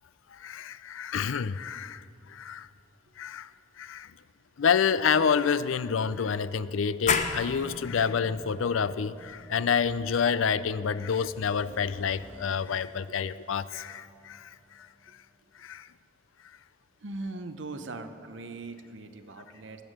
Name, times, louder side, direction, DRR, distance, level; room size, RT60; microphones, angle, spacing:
voice 1, 0.3-2.7 3.2-3.5 3.8-4.1 4.6-14.9 15.6-15.9, left 6 dB, 80° left, 16 dB, 0.5 m, -28 dB
sound 1, 7.1-12.5, left 5 dB, 35° left, 0.7 m, -35 dB
sound 2, 7.2-15.1, equal, 10° left, 2.2 m, -53 dB
voice 2, 17.0-19.8, right 2 dB, 65° right, 8 dB, 0.7 m, -40 dB
19.5 x 9.0 x 6.5 m, 2.6 s
head